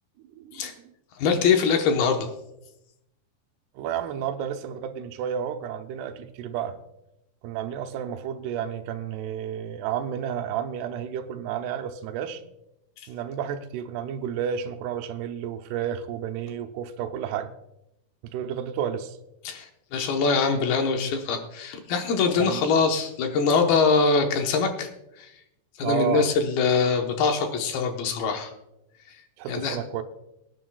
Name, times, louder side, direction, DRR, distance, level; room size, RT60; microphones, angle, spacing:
voice 1, 0.3-0.9 3.8-6.8 7.4-12.4 13.1-17.5 18.2-19.2 22.4-22.6 25.8-26.3 29.4-30.0, right 9 dB, 80° right, 7 dB, 2.7 m, -31 dB
voice 2, 1.2-2.3 19.4-24.9 25.2-25.3 25.8-28.5 29.5-29.8, left 5 dB, 70° left, 4 dB, 2.8 m, -23 dB
23.0 x 9.7 x 2.3 m, 0.86 s
omnidirectional pair, 4.7 m